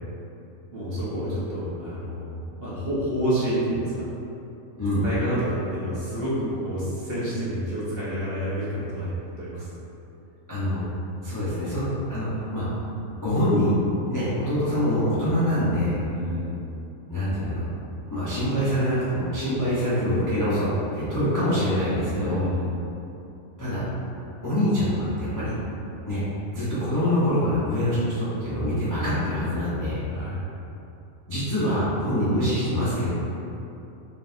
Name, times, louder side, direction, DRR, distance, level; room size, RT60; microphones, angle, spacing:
voice 1, 0.7-3.9 5.0-9.7 16.1-16.6 22.0-22.8 30.1-30.4, equal, 45° right, -9 dB, 1.0 m, -29 dB
voice 2, 10.5-10.8 11.2-12.6 13.2-13.8 14.1-16.0 17.1-17.6 18.1-22.4 23.6-23.8 24.4-25.5 26.0-26.2 26.5-30.0 31.3-33.1, equal, 20° left, -11 dB, 0.5 m, -25 dB
3.9 x 3.6 x 2.6 m, 2.8 s
omnidirectional pair, 1.5 m